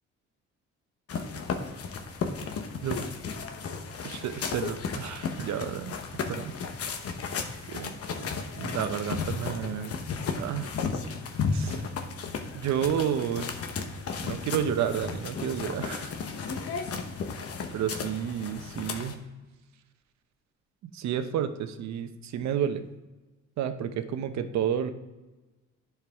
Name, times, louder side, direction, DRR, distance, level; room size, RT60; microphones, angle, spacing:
sound 1, 1.1-19.1, left 5 dB, 55° left, 1.0 m, -34 dB
voice 1, 4.0-6.0 6.3-6.5 7.7-7.9 8.2-10.0 10.3-10.7 11.5-11.8 12.5-13.5 14.2-16.1 17.7-19.2 20.9-22.8 23.6-24.9, right 9 dB, 70° right, 9 dB, 0.8 m, -31 dB
10.5 x 4.7 x 3.5 m, 1.1 s
cardioid pair, 110°, 29 cm